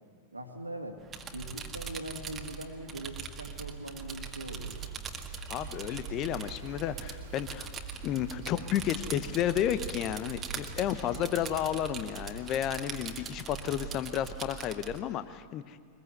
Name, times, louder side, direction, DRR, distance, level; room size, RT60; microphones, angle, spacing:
voice 1, 0.3-1.1 1.3-4.8, right 1 dB, 85° right, 4 dB, 2.1 m, -41 dB
sound 1, 1.0-15.0, right 6 dB, 20° right, 1.8 m, -42 dB
sound 2, 4.5-11.9, right 7 dB, 55° right, 2.3 m, -46 dB
Rain, 5.5-13.8, equal, 80° left, 3.6 m, -58 dB
voice 2, 5.5-7.7 8.0-15.8, left 11 dB, 35° left, 13 dB, 1.0 m, -32 dB
23.0 x 21.0 x 8.0 m, 2.2 s
figure-of-eight pair, 90°, 0 cm